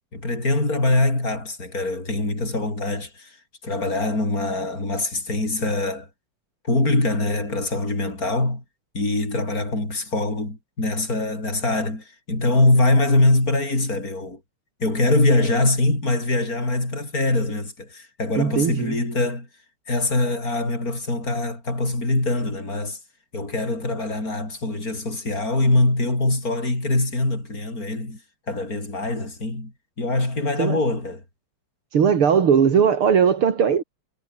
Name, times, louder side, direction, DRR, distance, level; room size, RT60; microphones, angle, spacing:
voice 1, 0.1-3.4 3.6-6.1 6.6-8.6 8.9-14.4 14.8-19.5 19.9-23.0 23.3-28.2 28.5-29.7 30.0-31.2, left 2 dB, 40° left, 7.8 m, -23 dB
voice 2, 18.4-19.0 30.6-30.8 31.9-33.8, right 7 dB, 75° right, 3.1 m, -18 dB
omnidirectional pair, 2.4 m